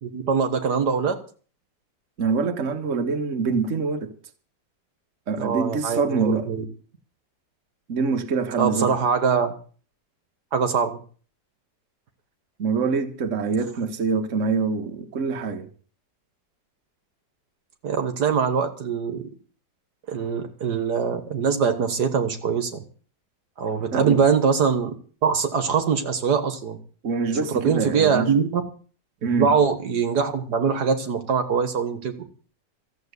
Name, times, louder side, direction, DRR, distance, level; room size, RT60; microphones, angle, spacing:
voice 1, 0.0-1.2 5.4-6.6 8.6-9.5 10.5-11.0 17.8-19.2 20.1-22.8 23.6-25.0 25.2-26.8 27.5-28.6 29.4-32.3, right 6 dB, 65° right, 1.8 m, -23 dB
voice 2, 2.2-4.1 5.3-6.5 7.9-9.0 12.6-15.7 23.9-24.2 27.0-28.3 29.2-29.5, right 5 dB, 45° right, 1.6 m, -25 dB
14.5 x 7.9 x 8.2 m
omnidirectional pair, 1.9 m